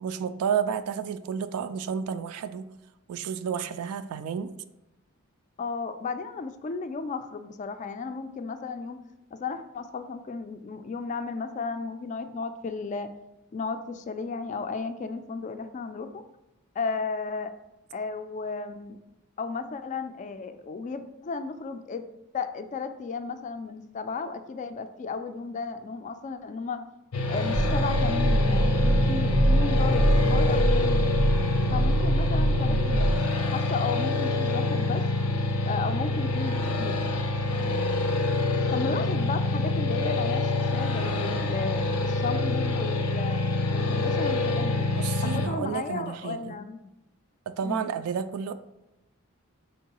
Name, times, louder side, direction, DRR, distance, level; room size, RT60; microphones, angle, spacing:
voice 1, 0.0-2.7 3.1-4.5 44.9-46.6 47.5-48.5, right 7 dB, 85° right, 11 dB, 0.3 m, -31 dB
voice 2, 5.6-9.0 9.3-13.1 13.5-16.2 16.8-17.5 17.9-19.0 19.4-22.1 22.3-26.8 27.3-31.1 31.7-33.2 33.5-35.1 35.7-37.0 38.7-43.4 43.7-44.9 45.2-46.9 47.6-47.9, left 4 dB, 35° left, 9 dB, 0.3 m, -34 dB
sound 1, 27.1-45.5, left 2 dB, 85° left, 0.6 m, -26 dB
sound 2, 27.5-33.2, right 1 dB, 20° right, 0.5 m, -24 dB
4.5 x 3.9 x 2.9 m, 0.95 s
head